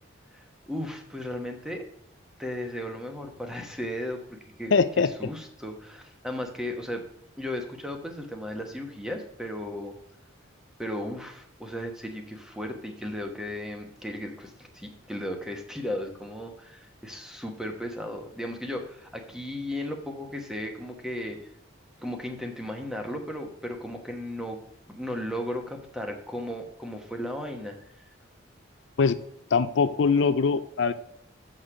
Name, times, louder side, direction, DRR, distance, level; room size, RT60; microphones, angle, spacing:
voice 1, 0.3-1.9 2.4-7.0 7.4-9.9 10.8-21.4 22.0-24.6 24.9-27.8, left 1 dB, 5° right, 3 dB, 1.1 m, -35 dB
voice 2, 4.7-5.1 29.0-29.1 29.5-30.9, left 5 dB, 60° left, 12 dB, 0.4 m, -22 dB
7.4 x 6.5 x 4.9 m, 0.74 s
head